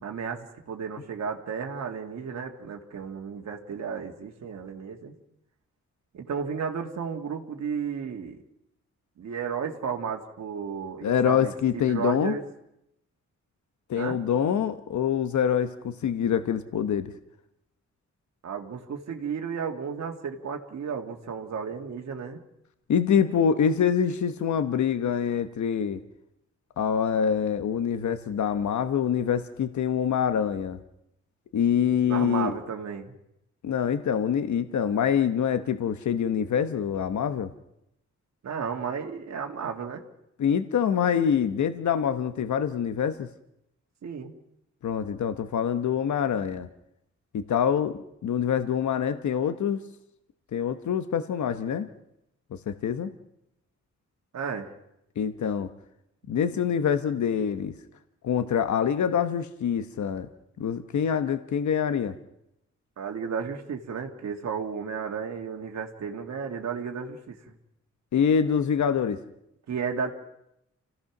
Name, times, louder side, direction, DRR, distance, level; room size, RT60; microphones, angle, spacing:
voice 1, 0.0-5.1 6.1-8.4 9.2-12.4 14.0-14.2 18.4-22.4 32.0-33.1 38.4-40.0 44.0-44.3 54.3-54.7 63.0-67.5 69.7-70.1, right 6 dB, 65° right, 3 dB, 2.0 m, -33 dB
voice 2, 11.0-12.4 13.9-17.1 22.9-26.0 26.8-30.8 31.5-32.5 33.6-37.5 40.4-43.3 44.8-46.7 47.3-49.8 50.5-51.9 52.5-53.1 55.2-55.7 56.3-57.7 58.2-60.3 60.6-62.1 68.1-69.2, left 8 dB, 80° left, 10 dB, 1.1 m, -25 dB
29.0 x 16.0 x 6.0 m, 0.82 s
wide cardioid pair, 175°, 29 cm